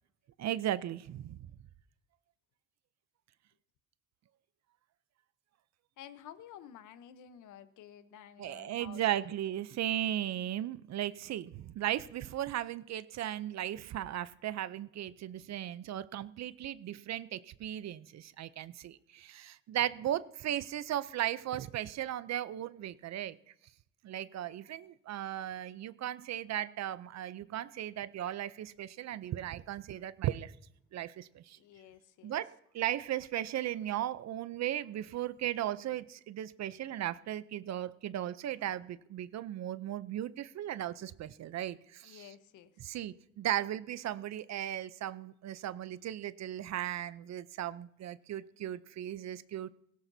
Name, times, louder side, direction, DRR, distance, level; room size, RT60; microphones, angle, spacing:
voice 1, 0.4-1.5 8.4-23.4 24.0-30.5 30.9-31.6 32.2-42.3 42.8-49.7, right 12 dB, 60° right, 16 dB, 0.6 m, -36 dB
voice 2, 6.0-9.3 31.5-32.4 42.0-42.9, left 10 dB, 85° left, 12 dB, 0.9 m, -52 dB
17.5 x 16.5 x 2.7 m, 0.74 s
cardioid pair, 90°, 30 cm